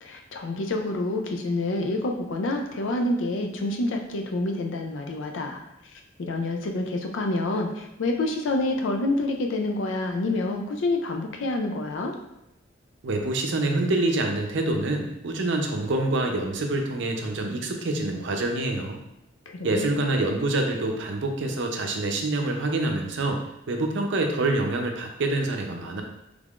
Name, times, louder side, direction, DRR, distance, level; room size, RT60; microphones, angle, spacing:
voice 1, 0.0-5.6 5.9-12.1 19.5-19.9, left 2 dB, 75° left, 3 dB, 0.4 m, -28 dB
voice 2, 13.0-19.0 19.6-23.4 23.7-26.0, right 2 dB, 70° right, 3 dB, 0.5 m, -26 dB
3.6 x 3.4 x 2.4 m, 0.85 s
head